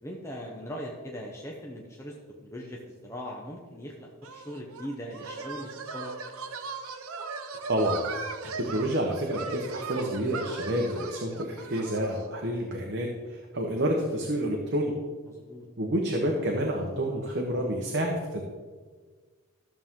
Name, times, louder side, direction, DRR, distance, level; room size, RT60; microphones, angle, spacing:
voice 1, 0.0-2.2 2.4-6.1 15.3-15.7, equal, 10° left, -1 dB, 0.8 m, -40 dB
sound 1, 4.2-12.3, right 4 dB, 75° right, 0.8 m, -38 dB
voice 2, 7.7-8.3 8.6-14.9 15.8-18.4, right 1 dB, 50° right, 0 dB, 1.0 m, -29 dB
13.5 x 7.2 x 3.7 m, 1.5 s
head